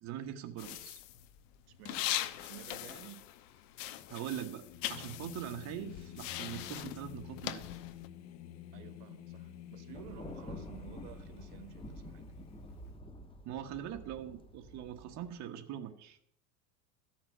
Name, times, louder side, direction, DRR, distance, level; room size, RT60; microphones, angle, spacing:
voice 1, 0.0-1.0 4.1-4.6 4.9-7.6 13.4-16.2, right 10 dB, 45° right, 1.3 m, -42 dB
sound 1, 0.6-3.5 3.7-8.1, left 13 dB, 80° left, 1.0 m, -40 dB
voice 2, 1.7-2.1 2.3-3.3 8.7-12.4, right 12 dB, 65° right, 1.5 m, -52 dB
Singing, 2.5-12.9, left 11 dB, 45° left, 0.8 m, -51 dB
Thunder, 9.9-15.3, left 1 dB, 15° left, 1.3 m, -49 dB
13.5 x 6.0 x 8.7 m
supercardioid pair, 120°, 38 cm